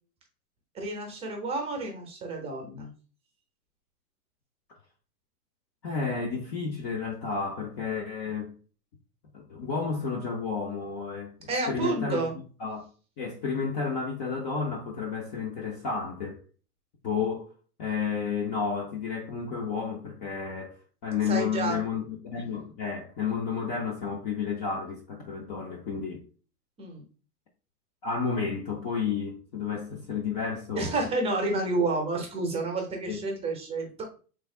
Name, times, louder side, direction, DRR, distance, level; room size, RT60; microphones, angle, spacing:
voice 1, 0.7-2.9 11.5-12.4 21.3-21.8 26.8-27.0 30.7-34.0, right 2 dB, 15° right, 0.6 m, -30 dB
voice 2, 5.8-8.5 9.3-11.3 11.7-12.2 12.6-12.8 13.2-16.4 17.0-17.5 17.8-20.7 21.0-26.3 28.0-31.0 33.1-33.2, left 5 dB, 30° left, 0.4 m, -31 dB
3.6 x 3.2 x 2.3 m
hypercardioid pair, 125°, 45 cm